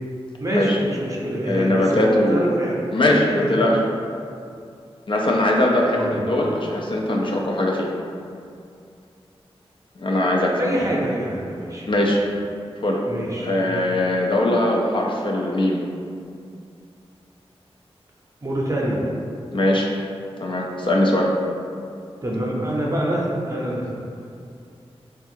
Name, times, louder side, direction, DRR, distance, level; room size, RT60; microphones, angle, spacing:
voice 1, 0.4-2.7 3.3-3.7 5.9-6.2 10.5-11.9 13.1-13.8 18.4-19.0 22.2-24.0, right 1 dB, 30° right, -3 dB, 0.6 m, -26 dB
voice 2, 1.5-2.5 2.9-3.8 5.1-7.9 10.0-10.6 11.9-12.2 12.8-13.0 13.4-15.8 19.5-19.9 20.4-21.3, left 1 dB, 55° left, -1 dB, 0.5 m, -20 dB
3.5 x 2.4 x 4.3 m, 2.4 s
wide cardioid pair, 105°, 10 cm